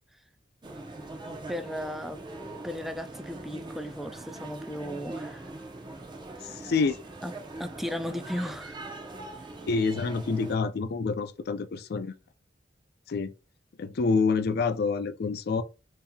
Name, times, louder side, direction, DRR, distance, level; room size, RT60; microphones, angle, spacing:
sound 1, 0.6-10.6, right 2 dB, 25° right, 0.7 m, -42 dB
voice 1, 1.5-2.2 2.6-5.5 7.2-7.3 7.6-8.8, equal, ahead, 0.4 m, -35 dB
voice 2, 6.6-7.0 9.7-12.1 13.1-13.3 13.8-15.6, left 4 dB, 60° left, 0.4 m, -27 dB
5.3 x 2.9 x 2.3 m
head